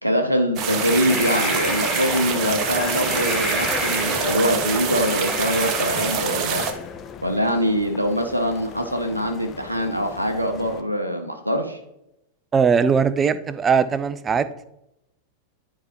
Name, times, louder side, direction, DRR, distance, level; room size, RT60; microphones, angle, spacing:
voice 1, 0.0-6.7 7.2-11.8, equal, 90° right, 4 dB, 0.6 m, -23 dB
sound 1, 0.6-6.7, right 6 dB, 35° right, 0.8 m, -26 dB
sound 2, 0.8-6.5, left 1 dB, ahead, 1.2 m, -31 dB
sound 3, 1.3-10.8, left 6 dB, 25° left, 0.6 m, -36 dB
voice 2, 12.5-14.5, right 6 dB, 20° right, 14 dB, 0.4 m, -19 dB
10.0 x 4.8 x 2.9 m, 0.85 s
figure-of-eight pair, 90°, 0 cm